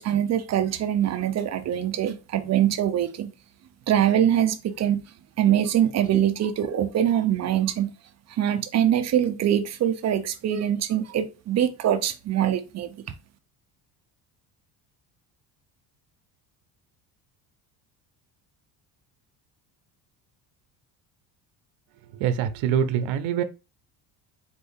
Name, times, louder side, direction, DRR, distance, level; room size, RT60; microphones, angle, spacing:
voice 1, 0.0-3.3 3.9-5.0 5.4-7.9 8.3-13.0, right 10 dB, 40° right, 0.5 m, -23 dB
voice 2, 22.1-23.4, right 8 dB, 80° right, 0.7 m, -24 dB
4.4 x 2.6 x 3.5 m
cardioid pair, 135°, 44 cm